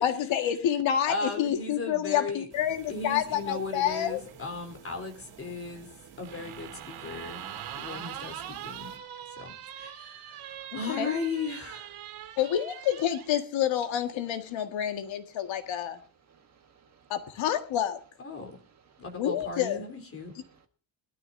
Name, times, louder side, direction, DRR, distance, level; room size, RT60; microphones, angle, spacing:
voice 1, 0.0-4.2 10.7-11.2 12.4-16.0 17.1-18.0 19.2-19.8, left 10 dB, 65° left, 1.8 m, -28 dB
voice 2, 1.1-2.4 2.9-5.9 6.2-7.4 7.8-8.9 9.4-9.5 9.8-11.9 18.2-18.5 19.0-20.3, left 3 dB, 25° left, 3.6 m, -36 dB
sound 1, 2.5-9.0, right 6 dB, 50° right, 3.5 m, -51 dB
sound 2, 6.2-13.3, right 10 dB, 80° right, 2.7 m, -42 dB
voice 3, 16.3-17.1 18.4-19.1 20.2-20.7, right 6 dB, 35° right, 1.5 m, -62 dB
22.0 x 13.0 x 2.6 m
cardioid pair, 175°, 49 cm